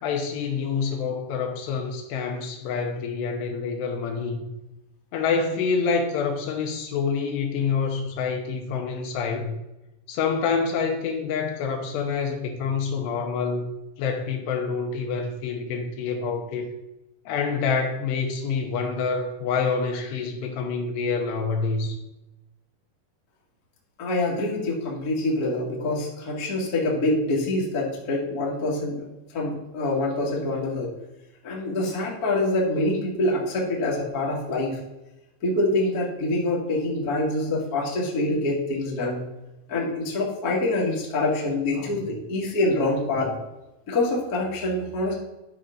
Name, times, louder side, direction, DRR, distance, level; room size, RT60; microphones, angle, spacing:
voice 1, 0.0-4.5 5.1-9.6 10.1-13.7 14.0-16.7 17.3-22.0 41.8-42.1 43.2-43.3, left 5 dB, 80° left, 2 dB, 2.8 m, -27 dB
voice 2, 24.0-29.1 29.3-30.9 31.4-34.8 35.4-39.2 39.7-43.3 43.9-45.1, left 2 dB, 50° left, -4 dB, 1.1 m, -25 dB
11.0 x 5.6 x 3.8 m, 0.97 s
omnidirectional pair, 5.2 m